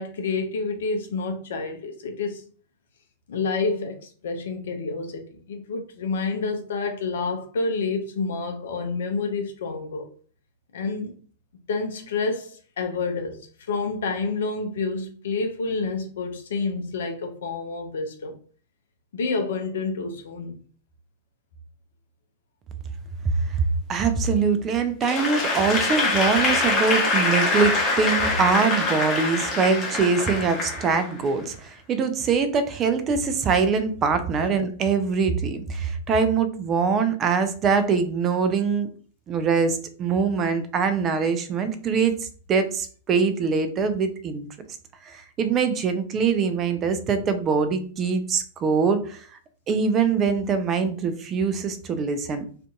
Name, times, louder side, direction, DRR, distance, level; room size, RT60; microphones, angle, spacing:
voice 1, 0.0-2.4 3.3-10.1 10.7-11.1 11.7-13.4 13.7-18.3 19.1-20.6, left 4 dB, 60° left, 0.5 m, -28 dB
voice 2, 23.6-38.9 39.3-42.2 42.5-44.5 45.0-49.3 49.7-52.5, right 5 dB, 30° right, 0.4 m, -23 dB
Applause / Crowd, 25.0-31.4, left 3 dB, 25° left, 0.8 m, -24 dB
2.5 x 2.5 x 2.3 m
figure-of-eight pair, 100°, 0 cm